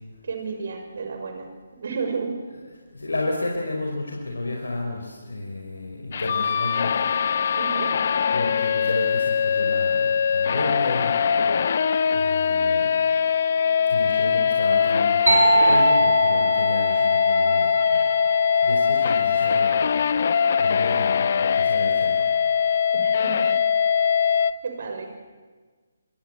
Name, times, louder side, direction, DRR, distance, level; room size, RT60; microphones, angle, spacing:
voice 1, 0.2-1.5 1.8-2.4 7.5-7.9 22.9-23.5 24.6-25.1, right 5 dB, 55° right, 5 dB, 6.3 m, -31 dB
voice 2, 2.9-7.1 8.3-11.2 12.0-13.1 13.9-18.0 18.6-19.7 20.6-22.1, left 2 dB, 70° left, 1 dB, 4.9 m, -31 dB
sound 1, 6.1-24.5, left 7 dB, 50° left, 1.1 m, -21 dB
sound 2, 15.3-19.0, right 2 dB, 70° right, 6.7 m, -23 dB
27.0 x 24.5 x 8.3 m, 1.4 s
figure-of-eight pair, 140°, 0 cm